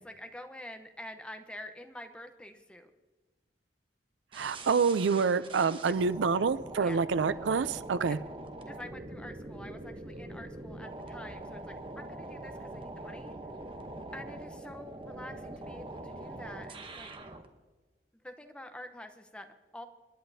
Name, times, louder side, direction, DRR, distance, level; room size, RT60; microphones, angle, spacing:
voice 1, 0.0-2.9 5.9-6.0 6.8-7.0 8.1-8.2 8.7-13.4 14.1-17.1 18.1-19.8, left 1 dB, 5° left, 6 dB, 0.8 m, -47 dB
sound 1, 4.3-17.5, right 2 dB, 30° right, 0.9 m, -43 dB
voice 2, 4.3-8.2, right 5 dB, 85° right, 15 dB, 0.5 m, -27 dB
27.5 x 10.0 x 2.7 m, 1.3 s
head